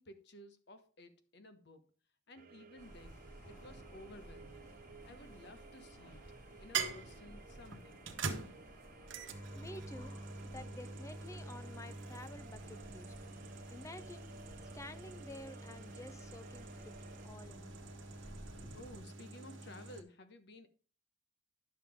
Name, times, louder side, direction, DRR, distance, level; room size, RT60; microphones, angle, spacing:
voice 1, 0.0-1.8 2.3-3.2 3.5-4.7 5.0-6.2 6.6-8.0 18.7-20.7, left 1 dB, 60° left, 9 dB, 1.1 m, -55 dB
sound 1, 2.3-17.3, right 4 dB, 50° right, 0.6 m, -58 dB
sound 2, 2.8-19.0, equal, 45° left, 4.5 m, -56 dB
sound 3, 5.0-5.7 6.7-20.0, right 4 dB, 90° right, 1.2 m, -45 dB
voice 2, 9.5-10.2 10.4-13.1 13.7-14.3 14.7-16.9 17.2-17.7, left 1 dB, 15° left, 11 dB, 0.7 m, -51 dB
10.0 x 6.9 x 3.6 m, 0.38 s
head